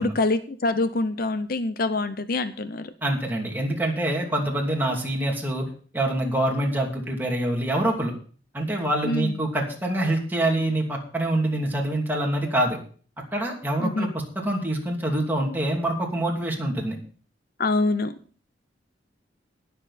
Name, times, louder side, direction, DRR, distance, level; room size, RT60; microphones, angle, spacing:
voice 1, 0.0-2.9 9.0-9.3 13.8-14.1 17.6-18.1, left 2 dB, 55° left, 12 dB, 0.7 m, -25 dB
voice 2, 3.0-5.6 5.9-8.1 8.5-12.8 13.3-17.0, right 1 dB, 10° right, -1 dB, 2.8 m, -25 dB
19.5 x 7.0 x 4.2 m, 0.43 s
head